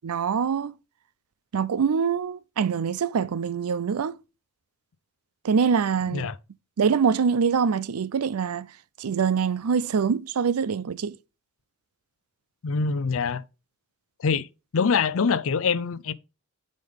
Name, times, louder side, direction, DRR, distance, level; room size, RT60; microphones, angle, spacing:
voice 1, 0.0-0.7 1.5-4.2 5.4-6.3 6.8-8.7 9.0-11.2, right 6 dB, 90° right, 0.5 m, -24 dB
voice 2, 12.6-13.4 14.2-14.5 14.7-16.1, left 5 dB, 65° left, 0.5 m, -24 dB
9.3 x 5.1 x 3.5 m
head